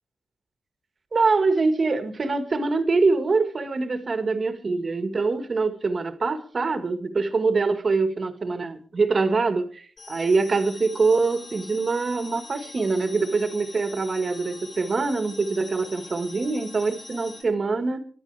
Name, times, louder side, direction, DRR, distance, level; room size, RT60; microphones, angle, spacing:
voice 1, 1.1-18.0, right 3 dB, 35° right, 1.9 m, -24 dB
sound 1, 10.0-17.4, left 3 dB, 50° left, 6.1 m, -43 dB
23.0 x 12.0 x 3.5 m
wide cardioid pair, 140°, 0 cm